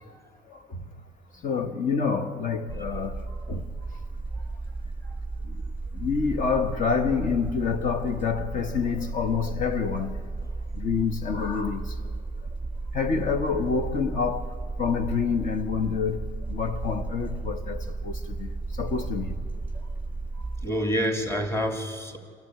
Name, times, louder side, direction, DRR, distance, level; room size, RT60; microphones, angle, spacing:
voice 1, 1.4-3.2 3.5-3.7 5.9-10.2 10.8-11.9 12.9-16.2 16.5-18.5 18.8-19.4, left 5 dB, 50° left, 1.3 m, -27 dB
sound 1, 2.7-20.7, right 3 dB, 10° right, 1.3 m, -34 dB
voice 2, 20.4-22.2, equal, 15° left, 2.7 m, -29 dB
28.0 x 12.5 x 9.4 m
cardioid pair, 110°, 17 cm